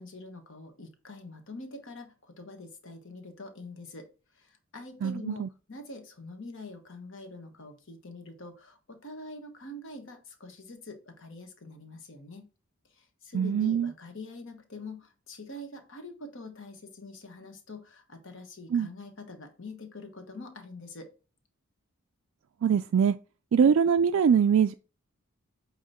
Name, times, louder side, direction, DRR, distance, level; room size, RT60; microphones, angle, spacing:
voice 1, 0.0-4.1 4.3-12.5 12.9-21.1 23.6-23.7, left 2 dB, 55° left, 1.3 m, -45 dB
voice 2, 5.0-5.5 13.3-13.9 18.7-18.9 22.6-23.2 23.5-24.7, right 7 dB, 60° right, 0.3 m, -23 dB
8.6 x 3.0 x 4.2 m
head